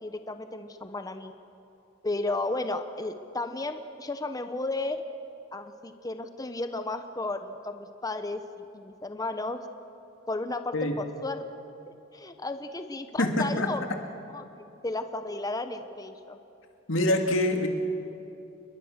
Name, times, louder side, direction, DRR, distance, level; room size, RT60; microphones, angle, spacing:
voice 1, 0.0-1.3 2.0-5.0 5.5-8.4 8.7-9.6 10.3-11.5 11.9-13.8 14.3-14.4 14.8-16.4, left 2 dB, 20° left, 8 dB, 0.8 m, -33 dB
voice 2, 13.2-13.7 16.9-17.7, left 1 dB, 85° left, 4 dB, 2.4 m, -25 dB
28.0 x 21.5 x 6.6 m, 2.9 s
head